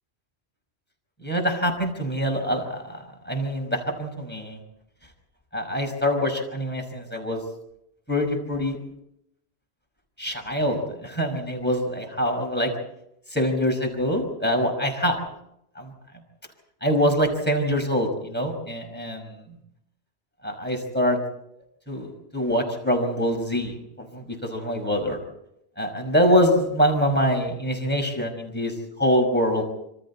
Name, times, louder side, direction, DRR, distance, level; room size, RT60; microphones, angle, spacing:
voice 1, 1.2-4.6 5.5-7.4 8.1-8.8 10.2-12.7 13.3-15.2 15.8-15.9 16.8-19.4 20.4-21.2 21.9-25.2 25.8-28.7 29.0-29.6, equal, 10° left, 2 dB, 5.6 m, -24 dB
27.5 x 25.5 x 4.3 m, 0.79 s
omnidirectional pair, 1.1 m